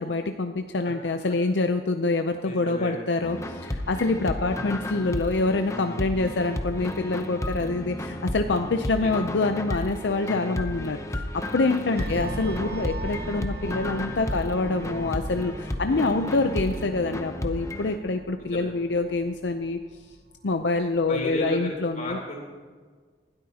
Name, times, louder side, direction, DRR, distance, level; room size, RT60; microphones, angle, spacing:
voice 1, 0.0-19.8 20.4-22.2, left 3 dB, 85° left, 6 dB, 0.6 m, -26 dB
voice 2, 2.4-3.2 4.4-4.7 9.0-9.1 11.9-12.2 15.9-16.4 18.5-18.7 21.1-22.4, left 1 dB, 45° left, -1 dB, 3.8 m, -34 dB
sound 1, 3.2-18.0, left 1 dB, 15° left, 0.8 m, -33 dB
sound 2, 12.0-21.0 21.3-21.6, right 2 dB, 60° right, 0.8 m, -40 dB
19.5 x 12.5 x 2.9 m, 1.5 s
head